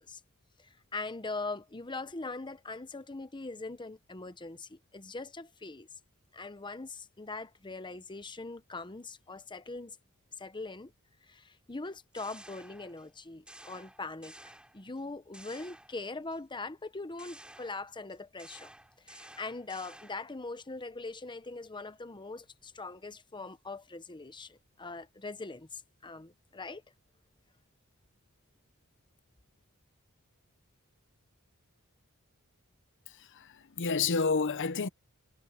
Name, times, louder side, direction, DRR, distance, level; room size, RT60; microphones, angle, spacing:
voice 1, 0.6-5.9 6.3-10.0 10.4-10.9 11.3-18.7 19.0-26.8, left 3 dB, 20° left, 0.9 m, -42 dB
sound 1, 11.8-13.1 13.5-15.0 15.3-16.4 17.2-20.4, right 1 dB, 5° right, 3.7 m, -53 dB
voice 2, 33.1-34.9, left 4 dB, 60° left, 0.8 m, -30 dB
head